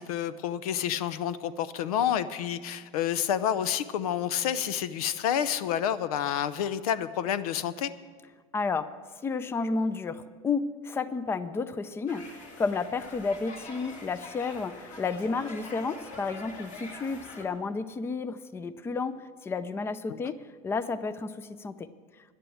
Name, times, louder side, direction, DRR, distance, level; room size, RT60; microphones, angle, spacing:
voice 1, 0.0-7.9 20.1-20.3, left 9 dB, 90° left, 15 dB, 0.7 m, -29 dB
voice 2, 8.5-8.9 9.2-21.9, left 4 dB, 15° left, 14 dB, 0.4 m, -32 dB
sound 1, 12.1-17.4, left 2 dB, 40° left, 2.4 m, -45 dB
10.5 x 10.0 x 7.2 m, 1.5 s
supercardioid pair, 130°, 18 cm